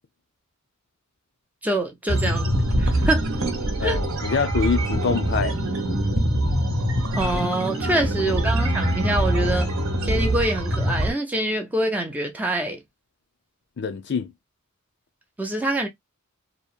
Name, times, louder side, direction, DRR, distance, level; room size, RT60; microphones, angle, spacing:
voice 1, 1.6-2.5 2.8-3.3 3.8-4.0 7.1-9.7 10.0-12.8 15.4-15.9, right 1 dB, 5° right, 0.4 m, -25 dB
sound 1, 2.1-11.1, right 1 dB, 70° right, 0.8 m, -24 dB
voice 2, 3.8-5.6 8.2-8.3 8.6-8.7 13.8-14.3, left 5 dB, 50° left, 0.5 m, -25 dB
2.8 x 2.0 x 2.4 m
head